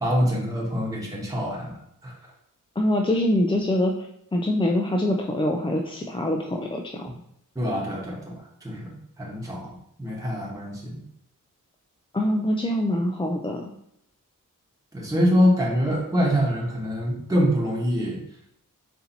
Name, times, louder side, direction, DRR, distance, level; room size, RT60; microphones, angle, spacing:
voice 1, 0.0-1.7 2.0-2.1 7.5-8.3 8.6-8.9 9.2-9.7 10.0-11.0 14.9-18.2, equal, 10° right, -4 dB, 1.1 m, -24 dB
voice 2, 2.8-7.1 12.1-13.7, left 1 dB, 15° left, 1 dB, 0.3 m, -24 dB
4.2 x 2.7 x 4.0 m, 0.74 s
wide cardioid pair, 110°, 33 cm